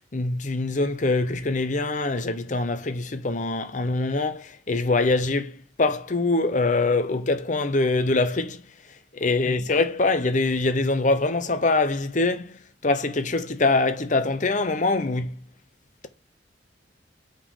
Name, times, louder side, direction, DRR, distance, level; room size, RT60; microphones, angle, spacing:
voice 1, 0.1-8.6 9.1-12.5 12.8-15.4, left 3 dB, 40° left, 0.7 m, -24 dB
5.9 x 4.5 x 5.3 m
head